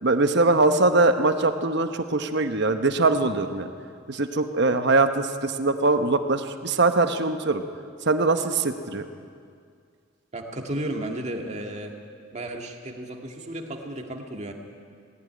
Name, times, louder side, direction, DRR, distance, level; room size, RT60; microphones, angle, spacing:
voice 1, 0.0-3.7 4.1-7.6 8.1-9.0, right 3 dB, 60° right, 8 dB, 1.1 m, -22 dB
voice 2, 10.3-12.0 12.3-14.5, right 1 dB, 35° right, 2 dB, 2.0 m, -33 dB
18.5 x 15.0 x 9.7 m, 2.2 s
head